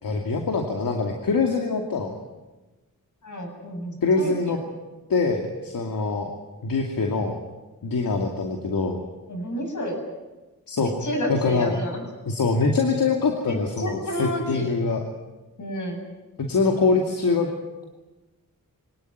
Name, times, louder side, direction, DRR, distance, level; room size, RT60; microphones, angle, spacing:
voice 1, 0.0-2.1 4.0-4.6 5.1-6.3 6.6-7.4 7.8-9.0 10.7-10.9 11.3-11.7 12.3-15.0 16.4-17.5, left 4 dB, 80° left, 2 dB, 2.6 m, -24 dB
voice 2, 3.2-4.5 9.3-10.0 11.0-12.0 13.4-14.7 15.6-16.1, equal, 60° left, 3 dB, 7.8 m, -30 dB
24.0 x 18.5 x 9.4 m, 1.1 s
wide cardioid pair, 80°, 34 cm